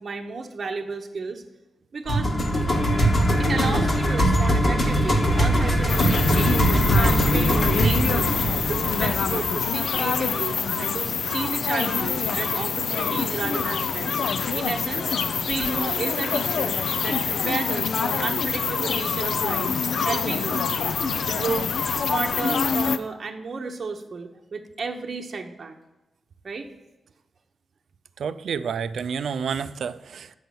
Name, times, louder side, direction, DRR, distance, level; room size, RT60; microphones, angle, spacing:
voice 1, 0.0-1.4 1.9-2.3 3.4-8.3 8.7-15.1 15.5-16.8 17.0-19.7 20.0-20.7 21.3-25.7 26.4-26.7, right 4 dB, 45° right, 2 dB, 0.9 m, -32 dB
sound 1, 2.1-10.2, equal, 40° left, 1.3 m, -21 dB
sound 2, 5.9-23.0, left 5 dB, 70° left, 0.5 m, -25 dB
voice 2, 28.2-30.4, right 6 dB, 75° right, 13 dB, 0.4 m, -29 dB
7.8 x 5.7 x 6.9 m, 1.0 s
wide cardioid pair, 145°, 0 cm